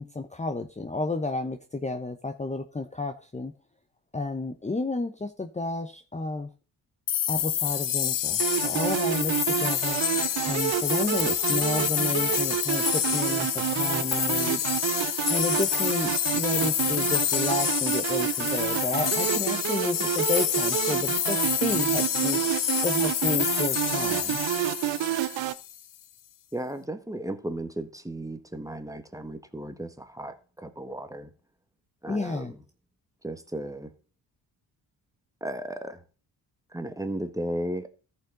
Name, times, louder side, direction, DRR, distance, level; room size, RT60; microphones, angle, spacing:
voice 1, 0.0-3.5 4.1-6.5 7.3-10.0 10.5-14.6 15.3-22.4 22.8-24.4 32.1-32.5, left 3 dB, 15° left, 1.0 m, -31 dB
sound 1, 7.1-25.8, left 11 dB, 45° left, 0.6 m, -28 dB
sound 2, 8.4-25.5, right 15 dB, 80° right, 0.7 m, -29 dB
voice 2, 26.5-31.3 32.0-32.6 33.2-33.9 35.4-36.0 36.7-37.9, right 1 dB, 5° right, 1.5 m, -35 dB
14.0 x 5.8 x 3.9 m
supercardioid pair, 60°, 44 cm